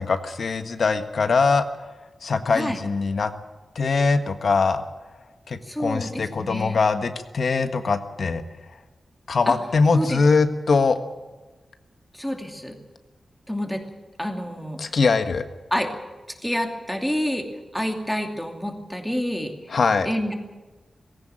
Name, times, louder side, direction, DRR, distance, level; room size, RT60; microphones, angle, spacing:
voice 1, 0.0-1.7 2.2-3.3 3.7-4.8 5.5-8.4 9.3-11.0 14.8-15.4 19.7-20.1, left 4 dB, 55° left, 8 dB, 1.5 m, -22 dB
voice 2, 5.6-6.8 9.5-9.6 9.9-10.2 12.1-12.8 13.5-13.8 14.2-14.8 15.7-15.9 16.4-17.5 17.7-19.5 20.0-20.3, equal, 5° left, 4 dB, 2.6 m, -28 dB
19.0 x 17.0 x 8.9 m, 1.2 s
wide cardioid pair, 170°, 0 cm